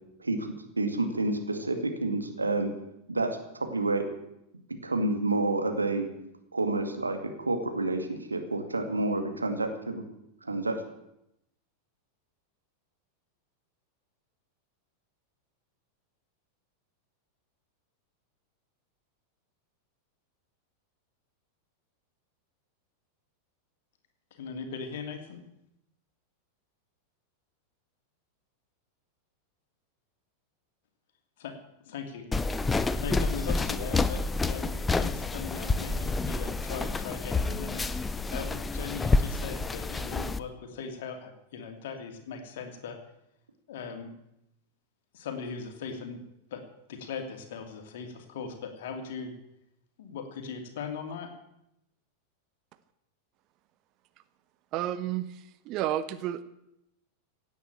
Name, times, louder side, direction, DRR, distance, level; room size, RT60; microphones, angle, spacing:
voice 1, 0.8-2.7 3.1-4.1 4.7-6.1 6.5-10.0 10.4-10.8, right 2 dB, 80° right, 6 dB, 2.3 m, -29 dB
voice 2, 24.3-25.4 31.4-31.5 31.8-32.2 33.0-37.8 38.3-43.0 43.7-44.1 45.1-46.2 46.5-46.6 46.9-49.3 50.0-51.3, left 6 dB, 55° left, 5 dB, 2.7 m, -39 dB
sound 1, 32.3-40.4, left 3 dB, 15° left, 0.7 m, -29 dB
voice 3, 54.7-56.4, right 12 dB, 40° right, 14 dB, 0.8 m, -31 dB
17.0 x 8.6 x 8.9 m, 0.83 s
figure-of-eight pair, 90°, 0 cm